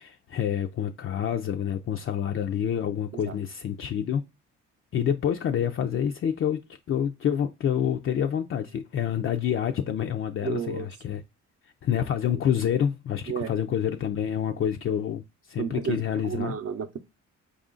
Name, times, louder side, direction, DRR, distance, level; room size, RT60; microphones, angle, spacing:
voice 1, 0.0-4.2 4.9-11.2 11.8-16.5, left 9 dB, 45° left, 0.4 m, -28 dB
voice 2, 10.4-10.9 13.3-13.5 15.6-16.0 16.2-17.0, right 7 dB, 50° right, 0.7 m, -31 dB
4.7 x 2.5 x 3.7 m
cardioid pair, 90°, 30 cm